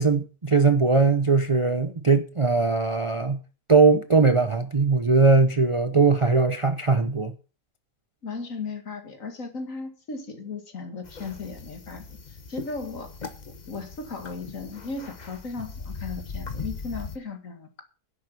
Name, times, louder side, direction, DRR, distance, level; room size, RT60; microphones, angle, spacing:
voice 1, 0.0-3.4 3.7-7.3, right 4 dB, 30° right, 0.6 m, -20 dB
voice 2, 8.2-12.0 12.5-13.1 13.4-17.8, left 4 dB, 55° left, 2.3 m, -36 dB
sound 1, 11.0-17.2, left 4 dB, 30° left, 1.1 m, -39 dB
10.5 x 7.9 x 6.9 m
omnidirectional pair, 1.7 m